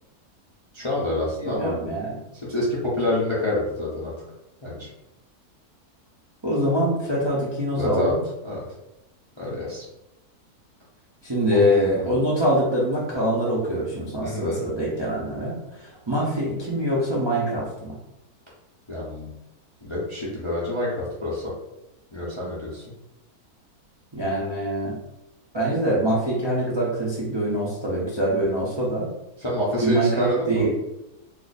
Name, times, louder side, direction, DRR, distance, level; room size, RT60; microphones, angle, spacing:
voice 1, 0.7-1.8 2.4-4.1 4.6-4.9 7.7-8.1 8.4-8.6 9.4-9.9 11.5-12.2 14.2-14.7 18.9-19.3 19.8-20.9 21.2-21.5 22.1-22.8 29.4-30.7, left 1 dB, 35° left, -6 dB, 0.5 m, -27 dB
voice 2, 1.4-2.2 6.4-8.2 11.2-18.0 24.1-25.0 25.5-29.1 29.8-30.7, equal, 40° right, -6 dB, 0.3 m, -24 dB
2.7 x 2.4 x 4.1 m, 0.91 s
omnidirectional pair, 1.6 m